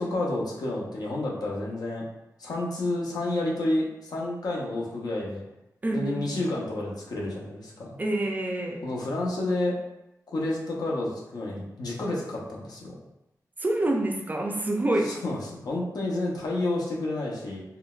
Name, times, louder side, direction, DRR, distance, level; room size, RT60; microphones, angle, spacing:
voice 1, 0.0-2.0 2.4-5.4 5.9-7.9 8.8-9.8 10.3-13.0 15.0-17.6, left 2 dB, 80° left, -3 dB, 0.7 m, -30 dB
voice 2, 5.8-6.3 8.0-8.8 13.6-15.1, right 1 dB, 25° right, 1 dB, 0.4 m, -27 dB
3.7 x 2.2 x 2.3 m, 0.89 s
wide cardioid pair, 100°, 7 cm